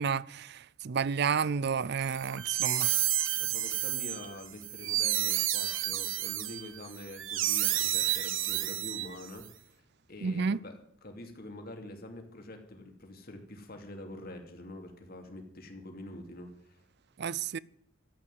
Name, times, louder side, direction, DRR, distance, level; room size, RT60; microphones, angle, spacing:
voice 1, 0.0-2.9 10.2-10.6 17.2-17.6, right 6 dB, 55° right, 0.5 m, -31 dB
sound 1, 2.1-9.4, right 12 dB, 75° right, 1.2 m, -30 dB
voice 2, 3.4-9.8 10.1-16.8, left 1 dB, 50° left, 2.8 m, -46 dB
14.0 x 8.5 x 9.4 m
head